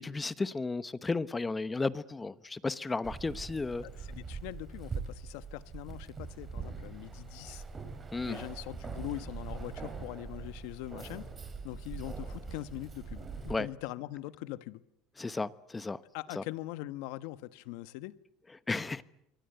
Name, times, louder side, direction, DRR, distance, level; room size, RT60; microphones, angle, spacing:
voice 1, 0.0-3.8 8.1-8.4 13.5-13.7 15.2-16.0 16.3-16.4 18.7-19.0, left 3 dB, 15° left, 1.0 m, -33 dB
Keys jangling, 3.0-13.5, right 5 dB, 25° right, 5.5 m, -42 dB
voice 2, 3.8-7.6 8.2-11.3 11.6-14.8 16.1-18.1, left 16 dB, 75° left, 1.2 m, -42 dB
27.5 x 23.5 x 8.0 m
supercardioid pair, 125°, 0 cm